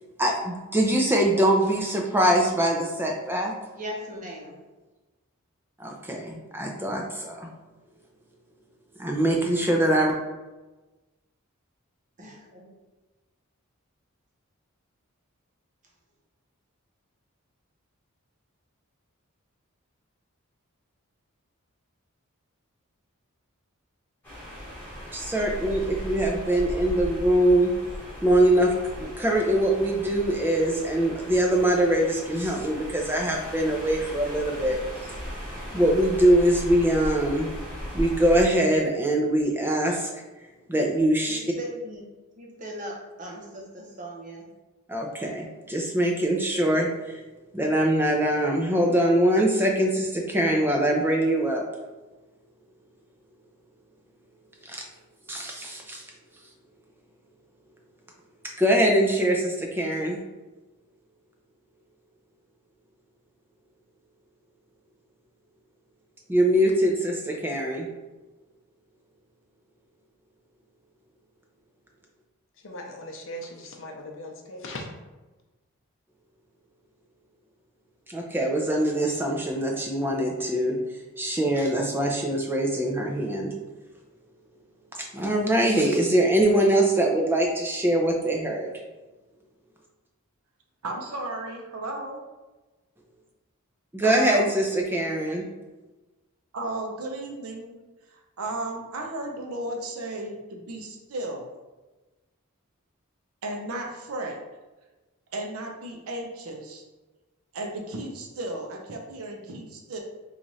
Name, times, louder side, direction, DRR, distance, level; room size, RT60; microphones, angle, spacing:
voice 1, 0.2-3.5 5.8-7.5 9.0-10.1 25.1-27.7 28.2-34.8 35.0-35.1 35.7-37.5 37.9-40.1 40.7-41.4 44.9-47.2 47.5-51.6 54.7-54.8 55.3-56.0 58.6-60.2 66.3-67.9 78.1-80.8 81.2-83.5 85.0-88.7 93.9-95.4, right 1 dB, 10° right, 0 dB, 0.4 m, -23 dB
voice 2, 3.7-4.6 12.2-12.7 41.3-42.0 42.4-44.5, equal, 35° right, -2 dB, 0.7 m, -38 dB
sound 1, 24.2-38.4, equal, 10° left, 1.0 m, -37 dB
voice 3, 72.6-74.9, left 1 dB, 60° left, 2 dB, 0.6 m, -39 dB
voice 4, 90.8-92.2 94.0-94.5 96.5-97.8 98.1-101.5 103.4-104.4 105.3-106.8 107.5-110.0, right 2 dB, 80° right, 1 dB, 0.6 m, -34 dB
3.1 x 2.4 x 4.0 m, 1.2 s
head